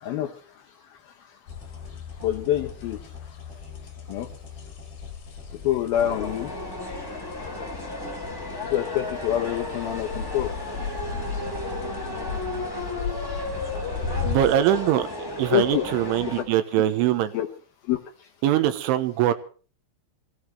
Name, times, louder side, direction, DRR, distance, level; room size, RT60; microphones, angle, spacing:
voice 1, 0.0-0.3 2.2-3.0 4.1-4.3 5.6-6.5 8.7-10.5 15.5-15.8 16.4-16.5 17.3-17.5 17.9-18.0, left 12 dB, 85° left, 3 dB, 2.1 m, -25 dB
sound 1, 1.5-14.6, left 6 dB, 55° left, 4.9 m, -36 dB
sound 2, 1.5-6.6, equal, 55° right, 9.2 m, -48 dB
sound 3, 5.9-16.4, left 2 dB, 5° left, 3.3 m, -34 dB
voice 2, 14.2-15.1 15.4-17.3 18.4-19.3, right 12 dB, 80° right, 10 dB, 3.4 m, -22 dB
24.0 x 16.5 x 3.3 m, 0.39 s
omnidirectional pair, 5.6 m